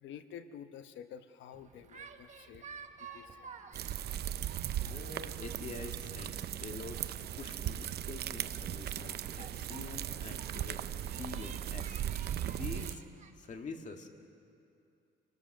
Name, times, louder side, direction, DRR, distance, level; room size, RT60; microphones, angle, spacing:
voice 1, 0.0-2.6 3.0-3.5, left 8 dB, 80° left, 9 dB, 1.0 m, -49 dB
sound 1, 1.5-13.3, right 6 dB, 40° right, 1.2 m, -54 dB
Subway metro underground, 3.1-12.7, left 3 dB, 60° left, 2.9 m, -62 dB
sound 2, 3.7-12.9, right 11 dB, 60° right, 0.6 m, -38 dB
voice 2, 4.7-10.8 11.2-12.0 12.5-13.0 13.4-14.1, left 4 dB, 40° left, 4 dB, 1.9 m, -46 dB
28.0 x 20.0 x 6.5 m, 2.6 s
cardioid pair, 135°, 19 cm